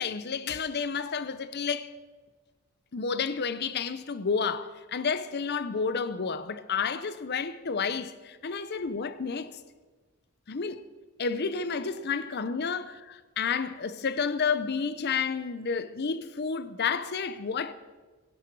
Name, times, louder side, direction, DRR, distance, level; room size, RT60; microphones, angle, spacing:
voice 1, 0.0-1.9 2.9-9.6 10.5-10.8 11.2-17.7, left 5 dB, 45° left, 0.6 m, -30 dB
18.0 x 17.0 x 4.7 m
head